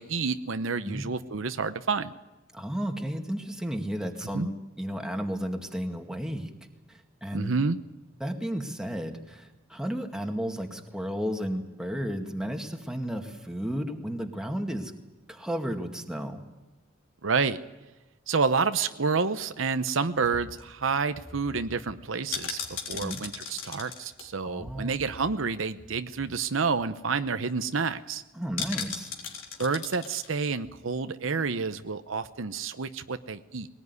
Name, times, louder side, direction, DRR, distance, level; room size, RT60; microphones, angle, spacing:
voice 1, 0.0-2.1 4.3-4.5 7.3-7.8 17.2-17.6 18.3-28.2 29.6-33.7, right 4 dB, 70° right, 10 dB, 0.8 m, -29 dB
voice 2, 2.5-6.5 6.9-7.5 8.2-14.9 15.3-16.4 22.9-23.2 24.4-24.9 28.3-29.1, equal, 5° right, 3 dB, 2.1 m, -33 dB
sound 1, 20.2-25.5 25.8-25.9 26.1-26.4 26.8-26.9 27.1-27.5 28.6-30.3 30.6-30.7, left 6 dB, 80° left, 3.6 m, -38 dB
21.0 x 19.0 x 9.6 m, 1.1 s
head